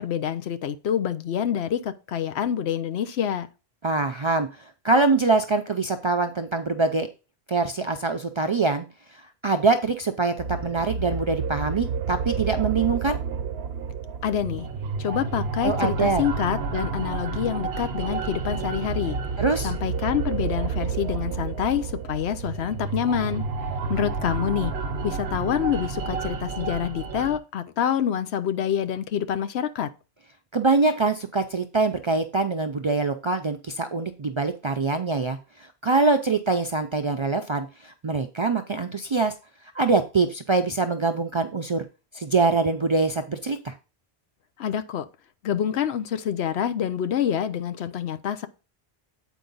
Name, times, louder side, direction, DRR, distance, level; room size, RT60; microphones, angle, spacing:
voice 1, 0.0-3.5 14.2-14.7 15.0-19.2 19.6-23.4 23.9-24.7 25.0-29.9 44.6-45.1 45.4-48.5, left 9 dB, 85° left, 0.9 m, -27 dB
voice 2, 3.8-4.5 4.8-7.1 7.5-8.9 9.4-13.2 15.6-16.2 19.4-19.7 30.5-35.4 35.8-39.3 39.7-41.9 42.1-43.7, right 3 dB, 45° right, 0.3 m, -24 dB
sound 1, 10.4-27.4, right 5 dB, 80° right, 1.0 m, -30 dB
8.2 x 4.6 x 3.9 m
omnidirectional pair, 1.1 m